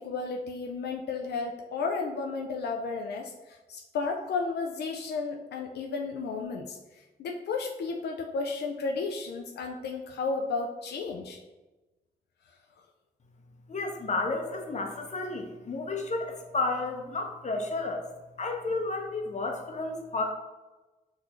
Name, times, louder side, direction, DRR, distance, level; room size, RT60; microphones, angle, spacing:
voice 1, 0.0-11.4, left 4 dB, 85° left, 2 dB, 0.4 m, -33 dB
voice 2, 13.7-18.1 18.4-20.2, left 3 dB, 45° left, 2 dB, 0.8 m, -32 dB
6.1 x 2.6 x 3.0 m, 1.1 s
cardioid pair, 75°, 17 cm